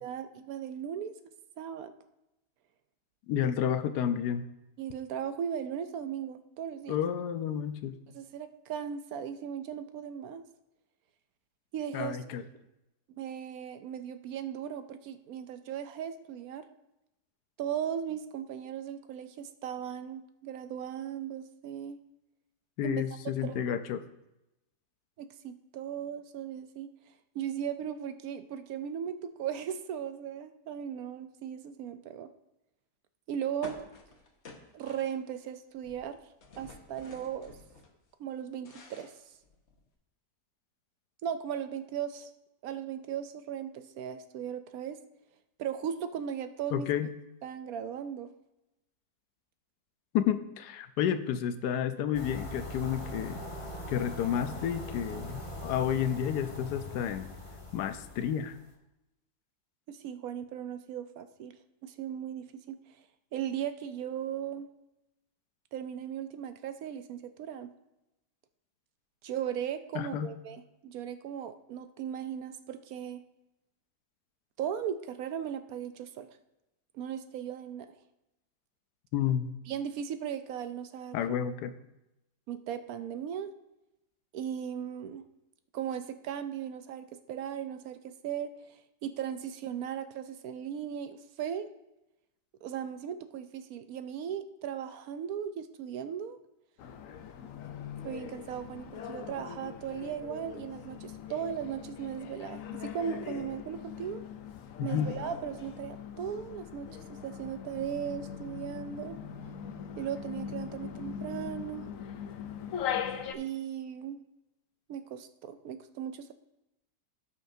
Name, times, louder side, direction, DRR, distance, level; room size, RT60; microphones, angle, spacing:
voice 1, 0.0-1.1 1.6-1.9 4.8-7.0 8.1-10.5 11.7-12.2 13.2-16.6 17.6-22.0 22.8-23.0 23.4-23.6 25.2-26.9 27.3-32.3 33.3-33.8 34.7-36.2 36.6-37.6 38.2-39.1 41.2-42.3 42.6-45.0 45.6-46.9 47.4-48.3 59.9-62.8 63.3-64.7 65.7-67.7 69.2-73.2 74.6-76.3 76.9-77.9 79.7-81.4 82.5-83.5 84.3-85.2 85.7-91.7 92.6-96.4 98.0-104.2 104.8-109.2 110.0-111.9 113.3-114.2 114.9-116.3, right 9 dB, 70° right, 10 dB, 1.0 m, -37 dB
voice 2, 3.3-4.5 6.9-8.0 11.9-12.4 22.8-24.0 46.7-47.1 50.1-53.4 53.9-57.3 57.7-58.6 69.9-70.3 79.1-79.5 81.1-81.7 104.8-105.1, left 9 dB, 85° left, 10 dB, 1.2 m, -31 dB
sound 1, 33.6-35.5 35.8-37.9 38.3-39.9, left 3 dB, 45° left, 1.3 m, -50 dB
sound 2, 52.1-58.5, left 1 dB, 25° left, 1.0 m, -41 dB
sound 3, 96.8-113.3, left 8 dB, 65° left, 0.9 m, -41 dB
16.5 x 5.7 x 2.7 m, 0.92 s
omnidirectional pair, 1.7 m